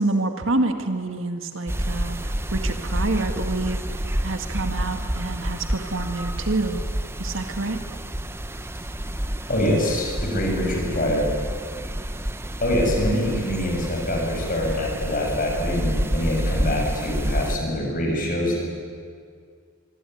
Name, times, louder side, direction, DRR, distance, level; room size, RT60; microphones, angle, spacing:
voice 1, 0.0-6.8 7.2-7.8, right 2 dB, 60° right, 6 dB, 2.0 m, -27 dB
sound 1, 1.7-17.6, right 1 dB, 10° right, 0.8 m, -29 dB
voice 2, 9.5-11.3 12.6-18.6, left 1 dB, 40° left, 0 dB, 7.2 m, -24 dB
25.0 x 23.5 x 9.5 m, 2.1 s
head